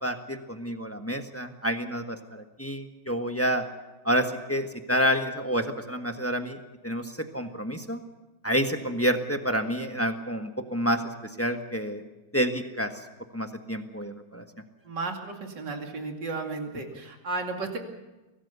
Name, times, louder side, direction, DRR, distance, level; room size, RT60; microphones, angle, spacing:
voice 1, 0.0-3.6 4.0-6.6 6.8-7.0 7.3-8.0 8.4-11.0 11.4-12.0 12.3-12.9 13.3-14.4, equal, 10° left, 6 dB, 1.1 m, -28 dB
voice 2, 14.8-17.8, right 3 dB, 60° right, 3 dB, 3.2 m, -34 dB
24.0 x 18.5 x 6.9 m, 1.1 s
omnidirectional pair, 2.1 m